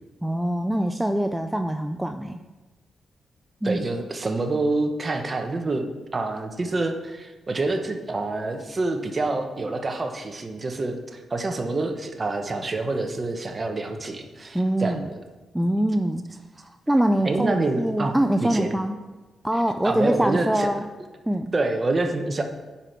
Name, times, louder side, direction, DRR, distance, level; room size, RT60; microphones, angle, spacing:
voice 1, 0.2-2.4 3.6-3.8 14.5-15.1 15.5-18.9 19.4-20.8 21.3-21.5, right 1 dB, 5° right, 7 dB, 0.4 m, -24 dB
voice 2, 3.6-15.1 17.2-18.7 19.8-20.9 21.5-22.4, right 2 dB, 35° right, 5 dB, 1.1 m, -27 dB
9.8 x 4.9 x 5.9 m, 1.2 s
cardioid pair, 85°, 0 cm